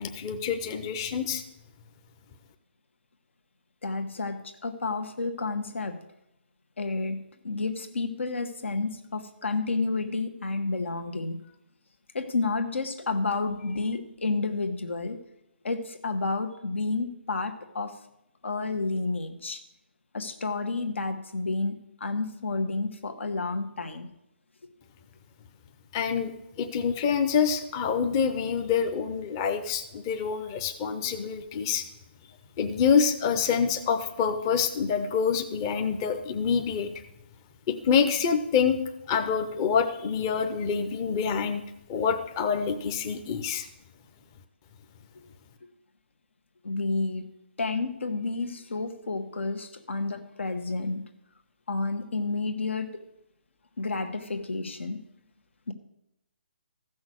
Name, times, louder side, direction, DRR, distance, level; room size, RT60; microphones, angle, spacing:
voice 1, 0.0-1.4 25.9-31.8 32.6-36.9 37.7-38.8 39.1-41.6 41.9-43.7, left 6 dB, 20° left, 7 dB, 0.6 m, -26 dB
voice 2, 3.8-6.0 6.8-11.4 12.1-15.2 15.6-18.0 18.4-19.6 20.1-24.1 46.6-47.3 47.6-51.0 51.7-53.1 53.8-55.0 55.7-55.8, left 3 dB, 90° left, 7 dB, 1.5 m, -30 dB
14.5 x 6.3 x 6.3 m, 0.85 s
hypercardioid pair, 170°, 6 cm